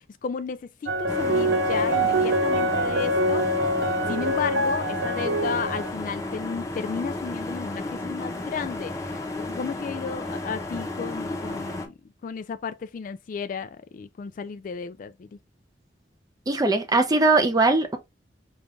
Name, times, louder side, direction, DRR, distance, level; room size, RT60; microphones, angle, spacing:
voice 1, 0.0-3.7 4.1-11.9 12.2-15.3, left 6 dB, 45° left, 0.3 m, -33 dB
sound 1, 0.9-5.9, right 1 dB, 70° right, 0.6 m, -24 dB
sound 2, 1.1-11.9, left 2 dB, 15° left, 0.8 m, -33 dB
voice 2, 16.5-18.0, right 3 dB, 20° right, 0.5 m, -20 dB
5.1 x 2.4 x 3.1 m
head